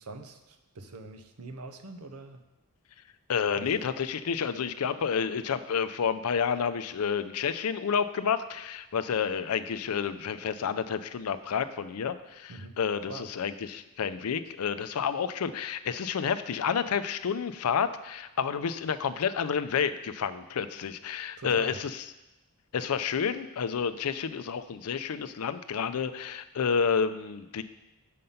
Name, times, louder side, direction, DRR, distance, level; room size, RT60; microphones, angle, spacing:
voice 1, 0.0-2.4 3.5-3.7 12.5-12.8 13.1-13.3 21.4-21.8, right 3 dB, 75° right, 8 dB, 0.7 m, -43 dB
voice 2, 3.3-21.9 22.7-27.6, left 6 dB, 75° left, 12 dB, 0.4 m, -30 dB
6.6 x 5.3 x 5.6 m, 0.99 s
head